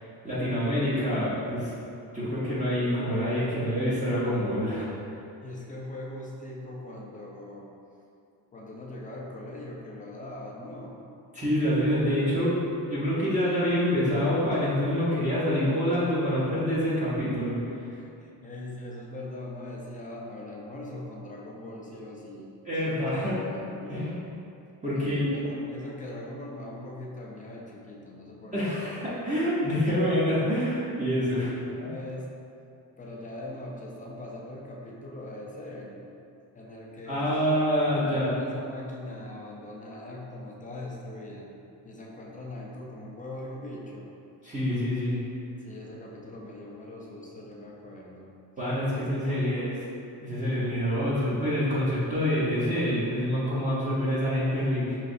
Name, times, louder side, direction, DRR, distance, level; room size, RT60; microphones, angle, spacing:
voice 1, 0.0-1.7 2.1-4.9 11.3-12.6 12.9-17.5 22.7-23.4 23.9-24.2 24.8-25.3 28.5-31.5 31.8-31.9 37.1-38.3 44.4-45.2 48.6-49.8 50.2-55.0, equal, 20° right, -10 dB, 0.7 m, -26 dB
voice 2, 5.4-7.7 8.5-11.0 17.9-22.5 22.8-24.3 24.9-28.8 31.1-32.3 33.0-36.0 36.5-37.3 37.8-41.5 41.8-44.1 45.6-48.4 48.7-49.6, left 1 dB, 20° left, -3 dB, 0.3 m, -41 dB
4.7 x 3.1 x 2.5 m, 2.6 s
cardioid pair, 140°, 43 cm